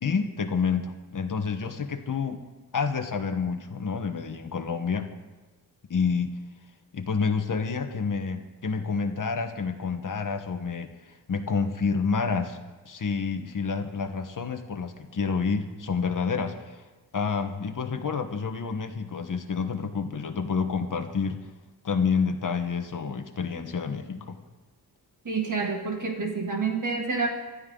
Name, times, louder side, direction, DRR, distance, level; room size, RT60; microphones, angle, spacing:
voice 1, 0.0-2.4 2.7-5.1 5.9-6.4 6.9-16.8 17.1-21.4 21.8-24.4, left 5 dB, 55° left, 6 dB, 1.3 m, -29 dB
voice 2, 25.3-27.3, right 4 dB, 50° right, 1 dB, 2.1 m, -28 dB
25.0 x 13.0 x 3.9 m, 1.2 s
wide cardioid pair, 165°, 38 cm